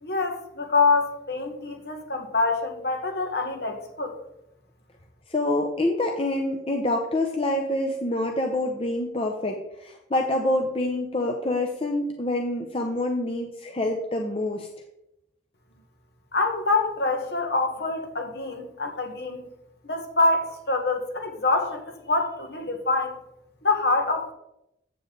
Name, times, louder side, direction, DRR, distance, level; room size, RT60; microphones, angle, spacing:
voice 1, 0.0-4.2 16.3-19.4 19.9-23.2 23.6-24.3, left 3 dB, 60° left, 4 dB, 1.5 m, -25 dB
voice 2, 5.3-14.7, left 1 dB, 30° left, 2 dB, 0.7 m, -26 dB
8.4 x 7.2 x 3.9 m, 0.83 s
head